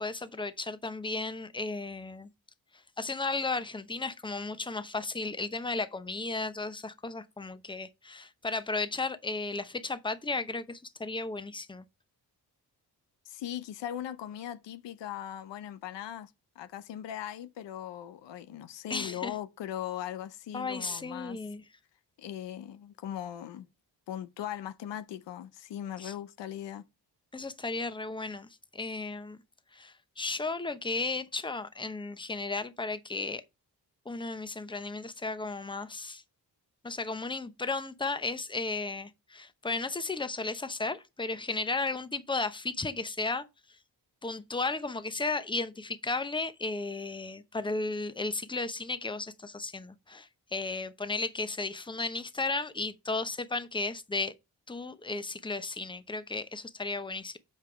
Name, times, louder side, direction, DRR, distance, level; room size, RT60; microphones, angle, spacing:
voice 1, 0.0-2.3 3.0-11.8 18.9-19.4 20.5-21.6 26.0-26.1 27.3-29.4 29.7-33.4 34.1-36.2 36.8-43.4 44.2-54.3 54.7-57.4, left 3 dB, 10° left, 0.8 m, -34 dB
voice 2, 13.3-16.3 16.6-21.4 22.2-23.7 24.1-26.8, left 11 dB, 85° left, 0.7 m, -39 dB
5.7 x 4.9 x 5.8 m
cardioid pair, 70°, 42 cm